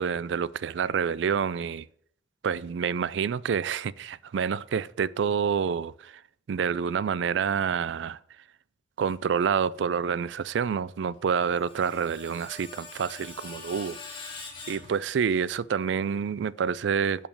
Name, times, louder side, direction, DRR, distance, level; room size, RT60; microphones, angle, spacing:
voice 1, 0.0-1.9 2.4-6.2 6.5-8.2 9.0-14.0 14.7-17.3, right 7 dB, 75° right, 0.3 m, -28 dB
Screech, 11.2-15.5, left 4 dB, 30° left, 1.6 m, -44 dB
6.4 x 5.8 x 7.1 m
head